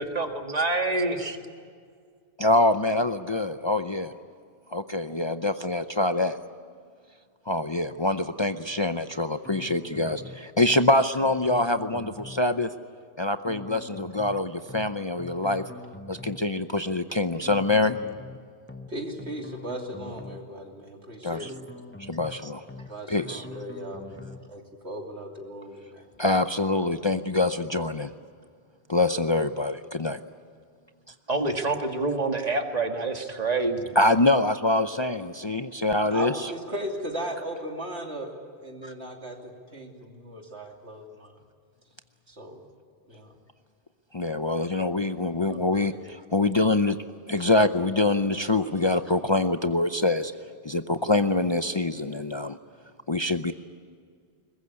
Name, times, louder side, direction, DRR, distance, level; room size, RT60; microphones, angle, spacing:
voice 1, 0.0-1.4 31.3-33.9, right 3 dB, 40° right, 4 dB, 1.9 m, -27 dB
voice 2, 2.4-4.1 4.7-6.4 7.5-12.7 13.2-15.6 16.1-18.0 21.2-21.5 22.1-22.6 23.1-23.5 26.2-28.1 28.9-30.2 34.0-36.5 38.8-38.9 44.1-47.0 47.3-50.3 50.6-52.6 53.1-53.5, left 2 dB, 30° left, 8 dB, 0.6 m, -25 dB
sound 1, 9.4-10.4 10.7-10.9 11.2-12.4 13.4-14.4 14.7-14.9 15.2-16.4 17.4-18.4 18.7-18.9 19.2-20.4 21.4-22.4 22.7-22.9 23.2-24.4, left 2 dB, 10° left, 1.1 m, -43 dB
voice 3, 18.9-21.6 22.9-26.2 36.1-38.3 38.6-41.3 42.3-42.6 43.1-43.3 45.4-45.6 45.9-46.0 50.8-51.0, right 1 dB, 90° right, 2 dB, 3.2 m, -37 dB
22.0 x 20.5 x 9.7 m, 2.1 s
omnidirectional pair, 1.1 m